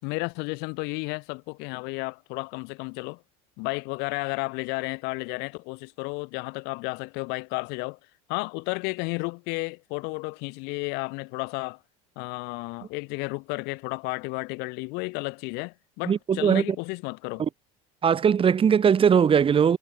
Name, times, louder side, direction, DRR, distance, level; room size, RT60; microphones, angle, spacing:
voice 1, 0.0-3.2 3.6-8.0 8.3-11.8 12.2-17.4, left 30 dB, 70° left, 7.5 m, -32 dB
voice 2, 16.0-16.8 17.4-17.5 18.0-19.8, right 7 dB, 30° right, 2.7 m, -20 dB
supercardioid pair, 105°, 18 cm